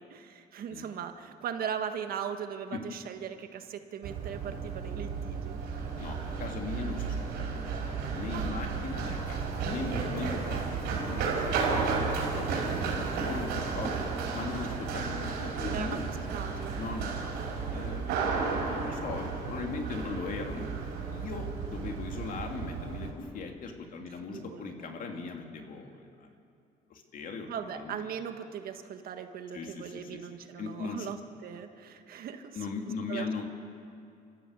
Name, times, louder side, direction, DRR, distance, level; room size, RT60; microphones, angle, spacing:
voice 1, 0.0-5.8 8.3-8.8 15.6-16.7 24.3-24.6 25.1-25.2 27.5-32.6 33.1-33.3, right 8 dB, 60° right, 7 dB, 1.6 m, -39 dB
Run, 4.0-23.1, right 5 dB, 90° right, 4.8 m, -33 dB
voice 2, 6.0-14.0 14.3-16.0 16.8-17.3 17.7-20.7 21.1-26.3 26.9-28.0 29.5-30.2 30.6-31.1 32.5-33.6, left 4 dB, 55° left, 3 dB, 2.9 m, -39 dB
28.0 x 14.5 x 8.3 m, 2.4 s
cardioid pair, 110°, 17 cm